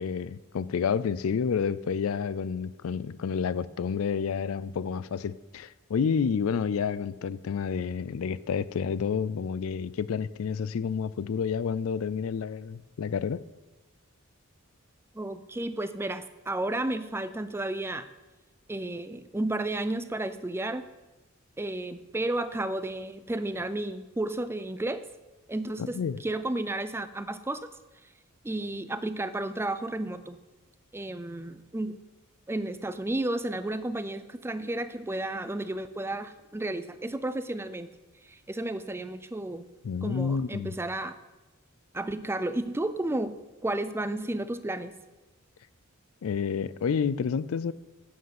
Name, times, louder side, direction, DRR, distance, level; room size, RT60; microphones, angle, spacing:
voice 1, 0.0-13.4 25.8-26.2 39.8-40.7 46.2-47.7, left 6 dB, 65° left, 17 dB, 0.4 m, -29 dB
voice 2, 15.1-18.1 18.7-20.8 21.6-25.0 25.5-27.6 28.4-30.4 30.9-32.0 32.5-37.9 38.2-39.6 40.0-41.2 41.9-43.4 43.6-44.9, right 1 dB, 10° right, 12 dB, 0.4 m, -32 dB
10.5 x 7.8 x 5.9 m, 1.1 s
head